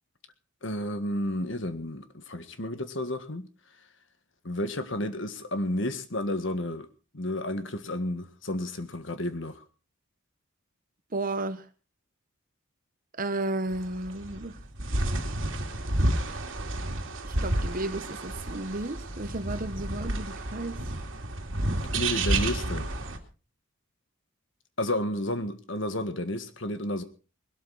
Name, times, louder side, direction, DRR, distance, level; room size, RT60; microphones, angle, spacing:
voice 1, 0.6-3.5 4.4-6.9 7.1-9.6 21.9-22.9 24.8-27.0, left 1 dB, 60° left, 1.7 m, -31 dB
voice 2, 11.1-11.6 13.2-14.6 17.2-20.8, right 2 dB, 40° right, 1.2 m, -33 dB
sound 1, 13.7-23.2, right 1 dB, 65° right, 2.5 m, -30 dB
21.0 x 12.5 x 4.1 m
head